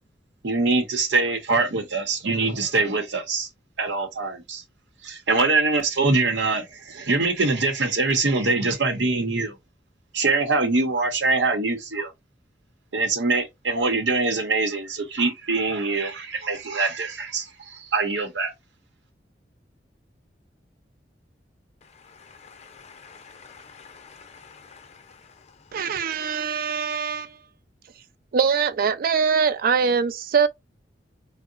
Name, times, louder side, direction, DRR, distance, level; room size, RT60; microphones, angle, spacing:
voice 1, 0.4-3.5 3.8-4.6 5.0-9.6 10.1-12.1 12.9-18.5, right 3 dB, 90° right, 0.8 m, -23 dB
voice 2, 21.8-26.0, left 5 dB, 40° left, 0.6 m, -49 dB
voice 3, 25.7-27.3 28.3-30.5, right 6 dB, 55° right, 0.4 m, -22 dB
3.7 x 2.1 x 2.5 m
head